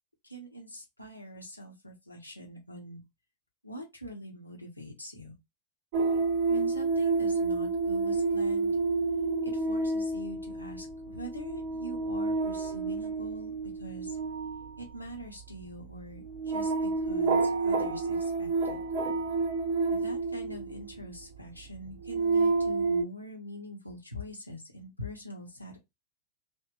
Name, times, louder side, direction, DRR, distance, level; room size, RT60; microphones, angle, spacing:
voice 1, 0.2-3.0 3.6-5.3 6.5-8.7 9.4-13.5 13.8-14.2 14.8-18.8 19.9-25.8, equal, 90° left, 0.8 m, -43 dB
Salvage windmill, 5.9-21.0 21.7-23.0, right 3 dB, 55° right, 0.7 m, -29 dB
2.8 x 2.6 x 2.3 m
figure-of-eight pair, 90°, 0 cm